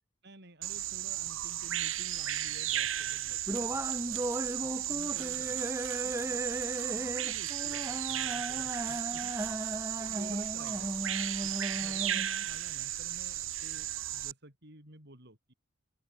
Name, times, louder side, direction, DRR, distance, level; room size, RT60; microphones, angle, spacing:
voice 1, 0.2-4.3 4.6-9.3 9.6-15.5, right 1 dB, 55° right, 6.9 m, -53 dB
Bird vocalization bird call bird song, 0.6-14.3, right 12 dB, 75° right, 2.5 m, -35 dB
sound 1, 3.5-12.5, right 1 dB, 15° right, 1.0 m, -36 dB
open air
head